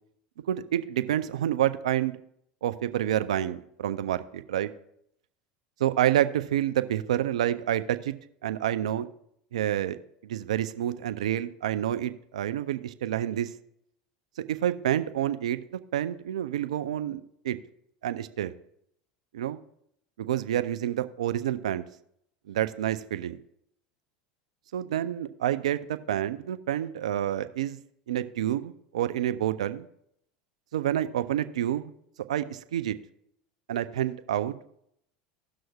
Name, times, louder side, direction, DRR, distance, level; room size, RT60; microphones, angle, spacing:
voice 1, 0.5-2.2 2.6-4.7 5.8-8.1 8.4-9.1 9.5-10.0 10.2-13.5 14.5-17.6 18.0-18.5 19.3-19.6 20.2-21.8 22.5-23.4 24.7-27.8 28.1-29.9 30.7-31.9 32.3-33.0 33.7-34.6, right 11 dB, 85° right, 12 dB, 0.5 m, -28 dB
17.0 x 6.3 x 2.3 m, 0.74 s
hypercardioid pair, 90°, 3 cm